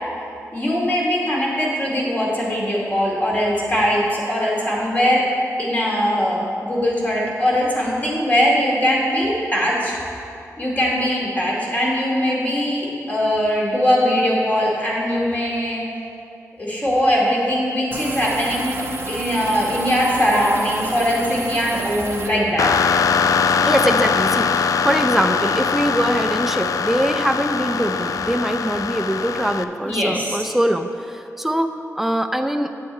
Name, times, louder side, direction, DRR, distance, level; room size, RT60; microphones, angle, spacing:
voice 1, 0.5-5.2 5.6-10.0 10.6-15.8 16.6-18.8 19.1-22.7 29.8-30.5, equal, 25° left, -5 dB, 2.4 m, -21 dB
sound 1, 17.9-22.3, right 2 dB, 40° right, 0.8 m, -31 dB
sound 2, 22.6-29.6, left 6 dB, 70° left, 0.3 m, -21 dB
voice 2, 23.6-32.7, right 1 dB, 5° right, 5 dB, 0.5 m, -22 dB
8.4 x 8.3 x 4.4 m, 2.6 s
wide cardioid pair, 90°, 6 cm